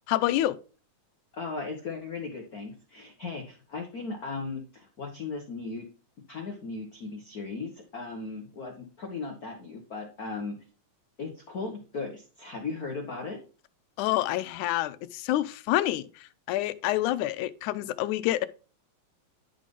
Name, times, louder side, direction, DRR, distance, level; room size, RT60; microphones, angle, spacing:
voice 1, 0.1-0.6 14.0-18.5, left 15 dB, 90° left, 2.0 m, -28 dB
voice 2, 1.3-5.8 6.3-10.6 11.2-13.4, left 4 dB, 75° left, 0.8 m, -37 dB
11.0 x 3.9 x 3.7 m
omnidirectional pair, 3.4 m